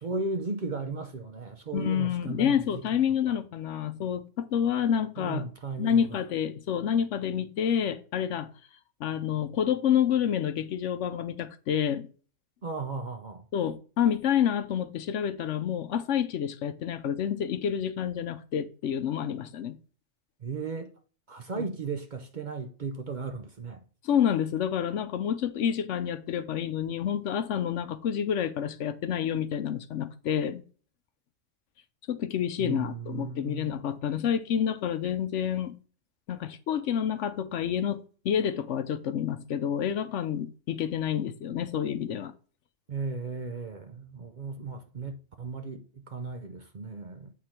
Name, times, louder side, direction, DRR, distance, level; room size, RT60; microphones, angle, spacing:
voice 1, 0.0-2.8 3.3-3.4 5.2-6.2 12.6-13.4 20.4-20.9 21.3-23.8 32.6-33.8 42.9-47.3, right 4 dB, 45° right, 0.7 m, -36 dB
voice 2, 1.7-5.4 5.8-8.5 9.0-12.1 13.5-19.8 21.5-21.7 24.0-30.6 32.1-35.7 36.3-42.3, left 9 dB, 70° left, 0.9 m, -28 dB
8.4 x 3.7 x 4.4 m
omnidirectional pair, 1.3 m